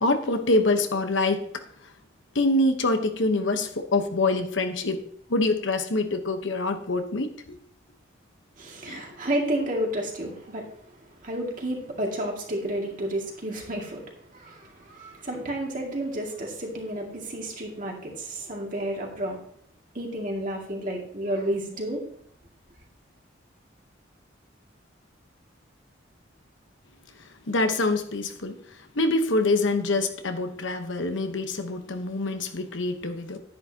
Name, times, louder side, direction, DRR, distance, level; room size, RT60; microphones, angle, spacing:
voice 1, 0.0-1.6 2.3-5.0 5.3-7.6 8.9-9.1 27.5-28.6 28.9-33.4, left 2 dB, 75° left, 7 dB, 1.0 m, -25 dB
voice 2, 8.6-10.8 11.2-19.4 19.9-22.0, right 1 dB, 40° right, 0 dB, 2.3 m, -31 dB
11.0 x 10.0 x 2.9 m, 0.62 s
head